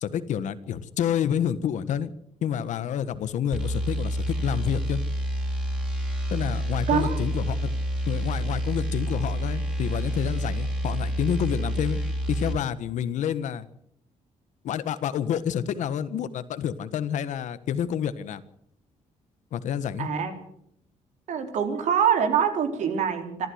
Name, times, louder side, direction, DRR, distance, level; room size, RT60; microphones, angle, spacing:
voice 1, 0.0-2.1 2.4-5.0 6.3-7.8 8.1-12.0 12.3-13.7 14.6-18.4 19.5-20.1, left 9 dB, 80° left, 13 dB, 1.5 m, -28 dB
sound 1, 3.5-12.6, equal, 5° right, 4.6 m, -28 dB
voice 2, 6.9-7.2 20.0-20.3 21.3-23.5, right 7 dB, 75° right, 6 dB, 3.9 m, -24 dB
25.5 x 14.0 x 8.0 m, 0.73 s
cardioid pair, 145°, 13 cm